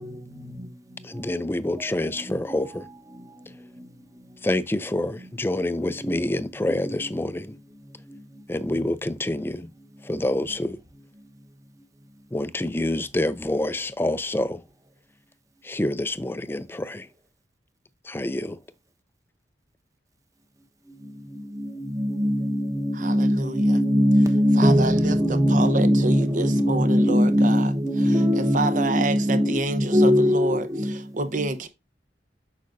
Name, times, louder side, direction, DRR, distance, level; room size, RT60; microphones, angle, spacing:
voice 1, 1.0-2.9 4.4-7.5 8.5-9.7 10.0-10.8 12.3-14.6 15.6-17.1 18.0-18.6, left 1 dB, 15° left, 0.4 m, -27 dB
voice 2, 22.0-29.6 29.9-30.9, equal, 20° right, 1.1 m, -20 dB
voice 3, 22.9-23.8 24.6-27.7 28.0-31.7, right 2 dB, 45° right, 0.9 m, -29 dB
8.3 x 6.2 x 2.6 m
head